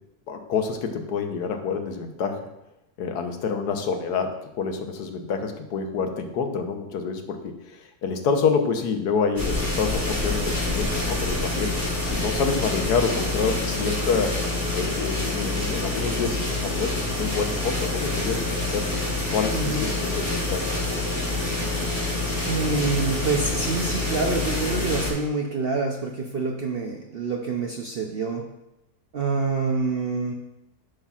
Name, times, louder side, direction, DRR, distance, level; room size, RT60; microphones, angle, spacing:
voice 1, 0.3-2.5 3.0-14.4 14.7-18.9 19.3-20.8, left 5 dB, 90° left, 5 dB, 1.4 m, -27 dB
sound 1, 9.4-25.1, left 2 dB, 10° left, 2.5 m, -27 dB
voice 2, 19.5-19.9 22.4-28.4 29.1-30.3, right 4 dB, 60° right, 1 dB, 0.6 m, -26 dB
11.5 x 5.6 x 2.4 m, 0.90 s
omnidirectional pair, 1.7 m